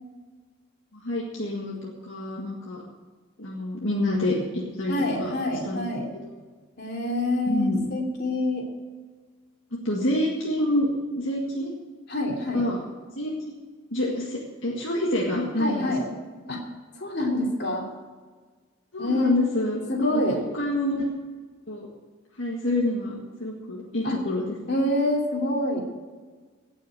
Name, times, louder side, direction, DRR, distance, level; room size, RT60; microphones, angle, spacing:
voice 1, 0.9-2.8 3.4-4.9 5.2-5.3 5.6-5.9 6.2-6.3 7.5-7.9 9.7-11.7 12.5-12.8 13.2-13.6 13.9-16.1 18.9-21.1 21.7-21.9 22.4-24.5, left 1 dB, 70° left, -3 dB, 1.9 m, -27 dB
voice 2, 4.9-6.1 6.8-8.7 12.1-12.7 15.6-16.0 16.5-16.6 16.9-17.9 19.0-19.4 19.9-20.4 24.0-24.2 24.7-25.8, left 1 dB, 50° left, 0 dB, 2.9 m, -26 dB
17.0 x 6.4 x 7.9 m, 1.4 s
head